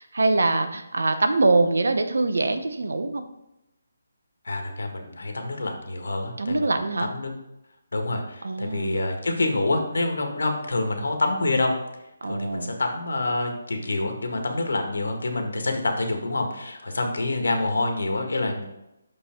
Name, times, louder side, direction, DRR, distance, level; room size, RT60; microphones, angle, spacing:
voice 1, 0.0-3.2 6.4-7.1 8.4-9.0 12.2-12.7, right 3 dB, 90° right, 8 dB, 0.9 m, -23 dB
voice 2, 4.4-6.7 7.0-7.3 7.9-11.7 12.2-18.6, left 2 dB, 85° left, 4 dB, 1.6 m, -27 dB
6.5 x 5.5 x 4.4 m, 0.89 s
hypercardioid pair, 180°, 0 cm